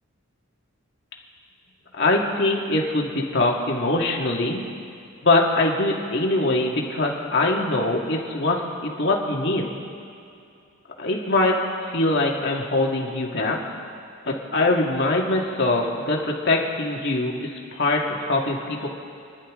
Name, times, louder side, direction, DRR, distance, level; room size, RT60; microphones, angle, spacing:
voice 1, 2.0-4.6 5.2-9.7 11.0-13.6 14.3-18.9, left 2 dB, 55° left, -1 dB, 2.0 m, -23 dB
29.5 x 11.0 x 3.8 m, 2.5 s
head